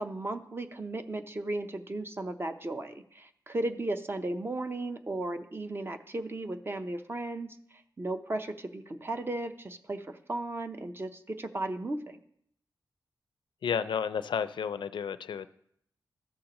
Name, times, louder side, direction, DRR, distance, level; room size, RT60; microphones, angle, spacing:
voice 1, 0.0-7.6 8.0-12.2, right 2 dB, 30° right, 7 dB, 0.7 m, -35 dB
voice 2, 13.6-15.5, left 7 dB, 85° left, 13 dB, 0.4 m, -31 dB
13.5 x 6.4 x 2.9 m, 0.70 s
cardioid pair, 75°, 8 cm